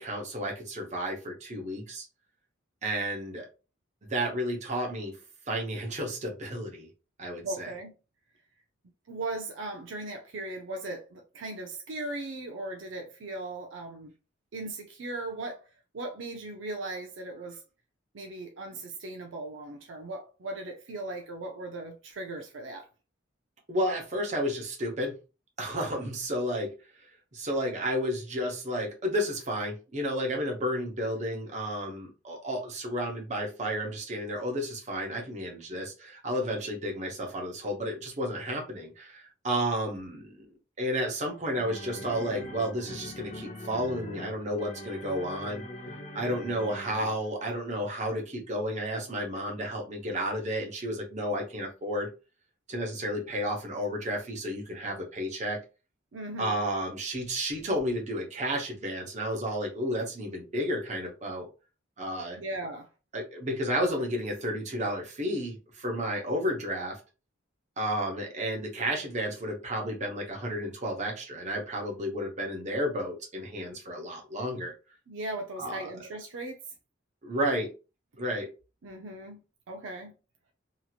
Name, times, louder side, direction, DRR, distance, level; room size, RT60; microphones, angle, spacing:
voice 1, 0.0-2.0 2.8-3.5 4.0-5.1 5.5-6.9 7.2-7.7 23.7-25.1 25.6-26.7 27.3-40.4 40.8-45.6 46.1-52.1 52.7-55.6 56.4-61.5 62.0-62.4 63.1-67.0 67.8-74.7 75.6-75.9 77.2-77.7 78.2-78.5, equal, 35° right, 0.9 m, -32 dB
voice 2, 7.4-7.9 9.1-14.1 14.5-15.7 15.9-17.6 18.1-22.9 56.1-56.6 62.3-62.9 75.1-76.6 78.8-79.4 79.7-80.1, right 2 dB, 70° right, 0.5 m, -38 dB
sound 1, 41.0-47.4, left 1 dB, 35° left, 0.7 m, -43 dB
3.0 x 2.7 x 2.4 m
head